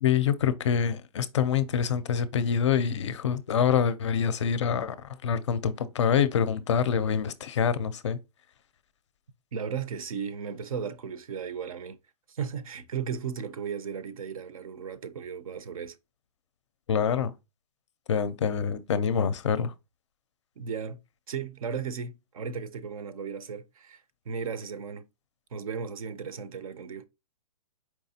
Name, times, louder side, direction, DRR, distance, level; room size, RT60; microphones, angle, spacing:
voice 1, 0.0-5.0 5.2-8.2 16.9-17.3 18.1-19.7, left 7 dB, 45° left, 0.5 m, -26 dB
voice 2, 9.5-12.0 12.3-16.0 20.6-21.0 21.3-25.0 25.5-27.1, right 6 dB, 60° right, 0.6 m, -35 dB
4.6 x 3.1 x 2.7 m
hypercardioid pair, 170°, 20 cm